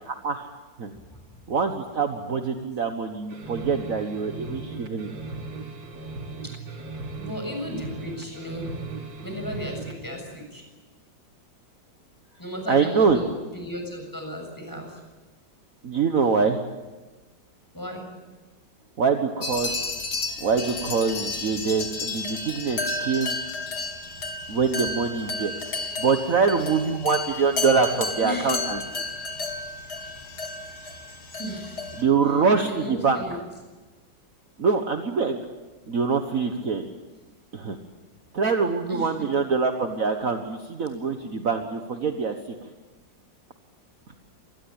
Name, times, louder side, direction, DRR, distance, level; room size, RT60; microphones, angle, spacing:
voice 1, 0.1-0.5 0.8-0.9 1.5-5.1 12.7-13.2 15.8-16.6 19.0-19.8 20.4-23.4 24.5-25.5 26.0-28.8 32.0-33.4 34.6-35.4 35.9-36.9 37.5-37.8 38.3-42.3, right 5 dB, 50° right, 5 dB, 1.7 m, -24 dB
sound 1, 3.3-10.0, right 3 dB, 90° right, 3.6 m, -37 dB
voice 2, 7.2-8.7 9.2-10.7 12.4-15.0 17.7-18.0 27.9-28.6 31.4-31.8 32.7-33.4 38.9-39.3, left 1 dB, 10° left, 2 dB, 7.1 m, -35 dB
sound 2, 19.4-32.0, left 3 dB, 60° left, 3.1 m, -32 dB
26.5 x 20.0 x 8.8 m, 1.2 s
omnidirectional pair, 2.0 m